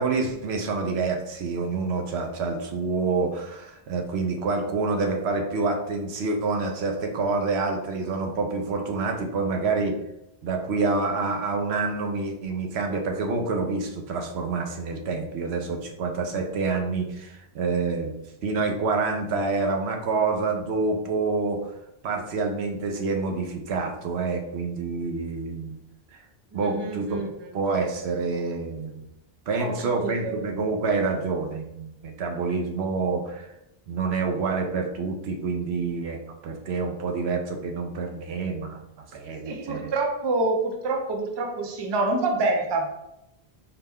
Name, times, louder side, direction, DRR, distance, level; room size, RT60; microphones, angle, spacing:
voice 1, 0.0-10.0 10.4-18.1 18.4-21.7 22.0-25.8 26.5-27.2 27.5-29.0 29.5-33.5 33.9-36.2 36.4-38.8 39.1-39.9, right 4 dB, 90° right, 3 dB, 0.9 m, -27 dB
voice 2, 26.5-27.5 29.6-30.3 39.4-42.9, right 2 dB, 35° right, 2 dB, 0.4 m, -27 dB
4.2 x 2.1 x 3.5 m, 0.84 s
omnidirectional pair, 1.1 m